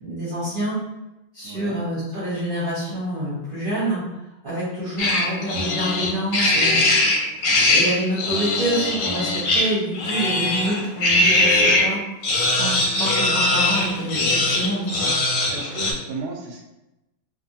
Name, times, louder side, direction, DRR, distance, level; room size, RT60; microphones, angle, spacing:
voice 1, 0.0-0.8 1.3-4.0 4.4-6.8 7.1-7.2 7.7-12.0 12.6-15.1, right 1 dB, 40° right, -10 dB, 0.8 m, -27 dB
voice 2, 1.4-1.8 15.5-16.7, right 3 dB, 75° right, 1 dB, 1.1 m, -34 dB
sound 1, 5.0-11.9 12.2-15.9, left 2 dB, 90° left, 1.3 m, -21 dB
2.5 x 2.5 x 2.7 m, 0.95 s
omnidirectional pair, 1.9 m